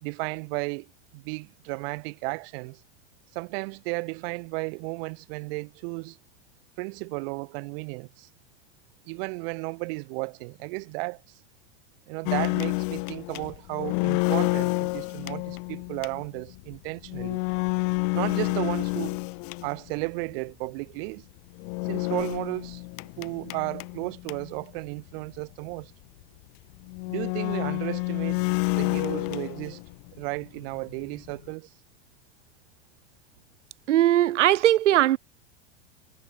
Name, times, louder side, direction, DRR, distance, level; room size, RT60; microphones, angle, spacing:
voice 1, 0.0-2.8 3.3-6.2 6.8-8.3 9.1-11.2 12.1-17.4 18.1-19.2 19.6-21.3 21.8-22.8 23.2-25.9 27.1-28.4 28.7-29.8 30.1-31.7, right 30 dB, 55° right, 1.4 m, -34 dB
sound 1, 12.3-20.1 21.6-24.6 25.0-25.1 25.3-25.4 26.2-26.3 26.9-30.1 30.4-31.5, left 40 dB or more, 40° left, 0.4 m, -29 dB
voice 2, 33.9-35.2, right 13 dB, 85° right, 0.5 m, -19 dB
hypercardioid pair, 100°, 35 cm